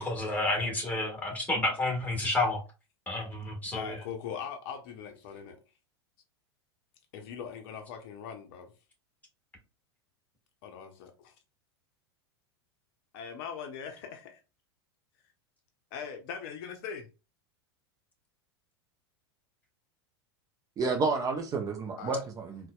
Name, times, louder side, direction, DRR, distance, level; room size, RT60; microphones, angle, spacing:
voice 1, 0.0-2.6 3.1-4.0, left 2 dB, 10° left, 1.4 m, -30 dB
voice 2, 3.8-5.6 7.1-8.7 10.6-11.3 13.1-14.4 15.9-17.1 22.0-22.2, left 7 dB, 55° left, 0.6 m, -40 dB
voice 3, 20.8-22.7, right 4 dB, 25° right, 0.5 m, -30 dB
4.0 x 2.2 x 2.2 m
hypercardioid pair, 95°, 14 cm